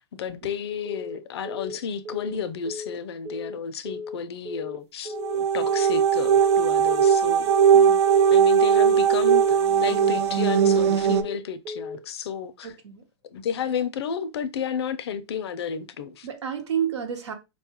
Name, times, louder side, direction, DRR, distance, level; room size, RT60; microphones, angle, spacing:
voice 1, 0.0-7.5 8.3-12.7 13.2-16.3, left 7 dB, 65° left, 0.5 m, -32 dB
Telephone, 0.9-1.2 1.5-1.8 2.1-2.4 2.7-3.0 3.3-3.6 3.9-4.2 4.5-4.8 5.1-5.4 5.7-6.0 6.3-6.6 6.9-7.2 7.5-7.8 8.1-8.4 8.7-9.0 9.3-9.6 9.9-10.2 10.5-10.8 11.1-11.4 11.7-12.0, left 3 dB, 45° right, 0.9 m, -35 dB
sound 1, 5.1-11.2, right 8 dB, 70° right, 0.4 m, -19 dB
voice 2, 7.7-8.0 12.6-13.0 16.2-17.3, right 8 dB, 85° right, 1.1 m, -30 dB
4.2 x 2.3 x 2.9 m
hypercardioid pair, 160°, 14 cm